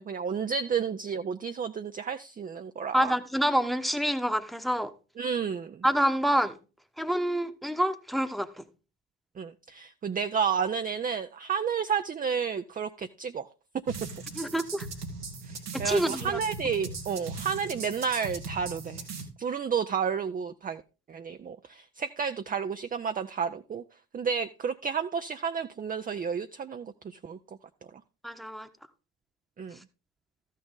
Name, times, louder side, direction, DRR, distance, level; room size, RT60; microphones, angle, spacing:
voice 1, 0.0-3.1 5.2-5.8 9.4-13.5 15.4-19.0 19.4-20.8 21.1-23.8 24.1-27.6 27.9-28.0 29.6-29.8, right 6 dB, 20° right, 0.5 m, -31 dB
voice 2, 2.9-4.9 5.8-6.6 7.0-8.6 14.4-14.9 15.8-16.4 28.2-28.7, equal, ahead, 1.0 m, -27 dB
sound 1, 13.9-19.2, right 3 dB, 90° right, 1.5 m, -39 dB
13.5 x 6.5 x 3.8 m
figure-of-eight pair, 50°, 45 cm